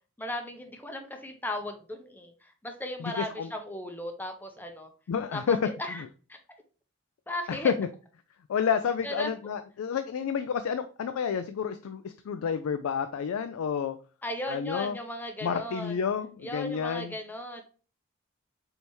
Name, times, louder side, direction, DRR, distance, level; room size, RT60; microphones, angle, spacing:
voice 1, 0.2-4.9 5.3-6.0 6.3-6.4 7.3-7.7 9.0-9.3 14.2-15.9 16.4-17.6, left 1 dB, 10° left, 5 dB, 0.5 m, -36 dB
voice 2, 3.0-3.5 5.1-5.6 5.9-6.1 7.5-7.9 8.5-14.0 14.5-15.0 15.4-17.2, left 7 dB, 85° left, 9 dB, 0.3 m, -30 dB
4.4 x 3.3 x 2.9 m, 0.37 s
head